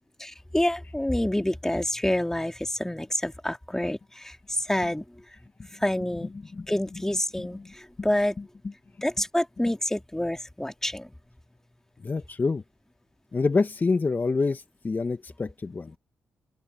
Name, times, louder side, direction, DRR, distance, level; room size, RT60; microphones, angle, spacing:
voice 1, 0.2-5.0 5.8-6.3 6.7-8.3 9.0-11.1, left 1 dB, 10° left, 2.9 m, -27 dB
voice 2, 6.2-6.7 6.9-7.0 7.3-8.1 8.4-8.7 12.0-12.6 13.3-16.0, left 4 dB, 35° left, 1.7 m, -28 dB
open air
supercardioid pair, 55°, 5 cm